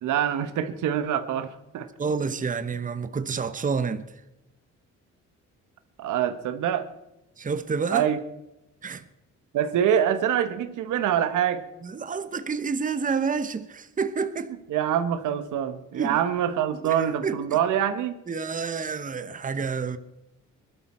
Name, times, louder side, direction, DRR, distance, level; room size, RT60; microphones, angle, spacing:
voice 1, 0.0-1.9 6.0-6.9 7.9-8.2 9.5-11.6 14.7-18.2, right 9 dB, 80° right, 1.2 m, -25 dB
voice 2, 2.0-4.2 7.4-8.1 8.8-9.0 11.8-14.5 16.0-16.2 16.7-17.6 18.3-20.0, right 5 dB, 25° right, 1.0 m, -29 dB
20.0 x 12.5 x 4.4 m
cardioid pair, 90°, 30 cm